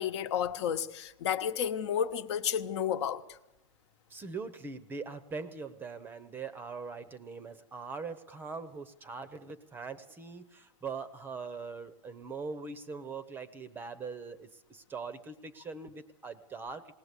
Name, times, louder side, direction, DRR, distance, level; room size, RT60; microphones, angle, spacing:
voice 1, 0.0-3.2, left 8 dB, 60° left, 1.1 m, -31 dB
voice 2, 4.1-16.9, right 4 dB, 10° right, 0.7 m, -42 dB
20.5 x 18.5 x 8.2 m
supercardioid pair, 160°, 17 cm